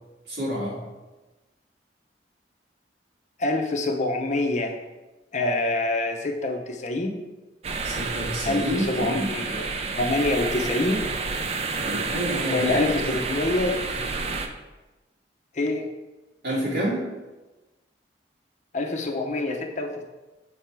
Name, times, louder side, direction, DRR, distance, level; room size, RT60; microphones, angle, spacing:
voice 1, 0.3-0.8 7.8-9.3 11.8-12.9 16.4-17.1, equal, 65° right, -5 dB, 2.0 m, -28 dB
voice 2, 3.4-4.8 5.3-7.2 8.4-9.7 10.0-11.1 12.5-13.8 15.5-15.8 18.7-20.0, left 2 dB, 40° left, 3 dB, 0.6 m, -26 dB
sound 1, 7.6-14.5, right 4 dB, 35° right, 0.4 m, -30 dB
6.6 x 3.5 x 4.5 m, 1.1 s
head